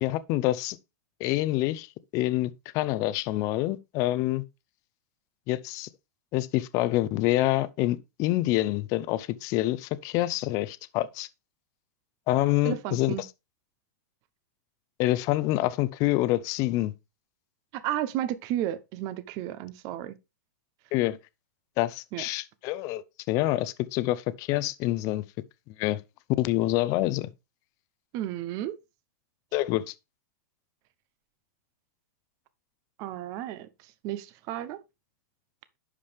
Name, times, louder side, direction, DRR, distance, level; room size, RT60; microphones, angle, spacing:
voice 1, 0.0-0.8 1.2-1.9 2.1-4.4 5.5-5.9 6.3-11.3 12.3-13.3 15.0-16.9 20.9-21.2 21.8-25.2 25.8-26.0 26.4-27.3 29.5-29.9, left 16 dB, 35° left, 0.7 m, -27 dB
voice 2, 12.6-13.2 17.7-20.1 22.1-22.2 28.1-28.7 33.0-33.7 34.0-34.8, right 12 dB, 35° right, 0.9 m, -32 dB
11.0 x 5.0 x 3.4 m
hypercardioid pair, 145°, 10 cm